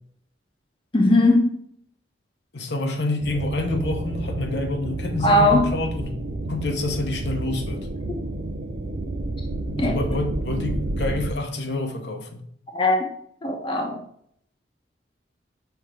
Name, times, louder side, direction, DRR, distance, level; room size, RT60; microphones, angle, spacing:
voice 1, 0.9-1.5 5.2-5.7 9.8-9.9 12.7-13.1 13.4-14.0, left 1 dB, 30° left, 0.9 m, -19 dB
voice 2, 2.5-6.2 6.5-7.9 9.8-12.4, left 2 dB, 70° left, 0.9 m, -27 dB
sound 1, 3.2-11.3, right 2 dB, 65° right, 0.6 m, -30 dB
5.8 x 3.5 x 4.9 m
head